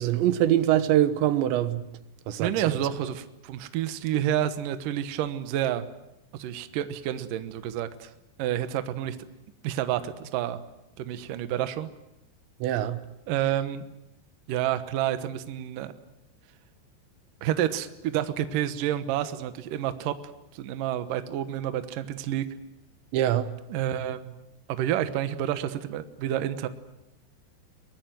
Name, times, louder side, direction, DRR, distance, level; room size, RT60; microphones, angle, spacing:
voice 1, 0.0-1.9 2.3-2.5 12.6-13.0 23.1-23.5, right 12 dB, 85° right, 3.4 m, -23 dB
voice 2, 2.4-5.9 6.3-8.1 8.4-9.2 9.6-10.6 11.0-11.9 13.3-13.8 14.5-15.9 17.4-20.2 20.5-22.5 23.7-24.4 24.7-26.7, right 11 dB, 65° right, 2.4 m, -29 dB
23.0 x 20.5 x 9.2 m
omnidirectional pair, 5.0 m